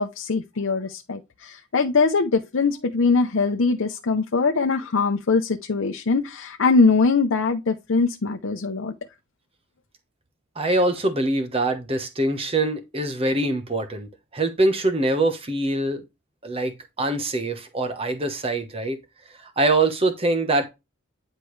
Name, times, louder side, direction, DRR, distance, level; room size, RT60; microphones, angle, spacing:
voice 1, 0.0-8.9, left 4 dB, 70° left, 0.7 m, -22 dB
voice 2, 10.6-16.0 16.4-19.0 19.4-20.7, right 2 dB, 25° right, 1.0 m, -24 dB
9.8 x 4.5 x 3.2 m
head